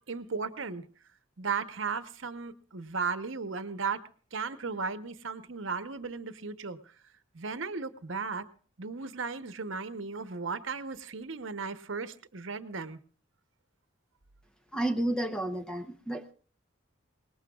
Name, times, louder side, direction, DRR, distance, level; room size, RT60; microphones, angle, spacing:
voice 1, 0.1-0.9 1.4-4.0 4.3-6.9 7.3-8.4 8.8-13.0, right 5 dB, 75° right, 11 dB, 0.9 m, -35 dB
voice 2, 14.7-16.3, right 1 dB, 5° left, 7 dB, 0.7 m, -31 dB
24.0 x 19.5 x 2.4 m, 0.42 s
head